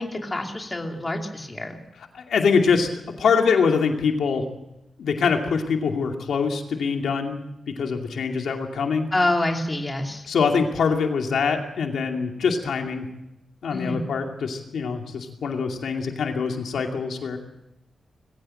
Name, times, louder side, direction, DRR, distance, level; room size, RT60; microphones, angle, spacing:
voice 1, 0.0-1.8 9.1-10.3 13.7-14.1, left 2 dB, 20° left, 2 dB, 2.6 m, -27 dB
voice 2, 2.1-2.9 3.2-4.4 5.0-7.4 7.8-9.1 10.3-13.1 13.6-17.4, left 5 dB, 85° left, 3 dB, 2.5 m, -24 dB
21.0 x 16.0 x 7.8 m, 0.89 s
wide cardioid pair, 115°, 0 cm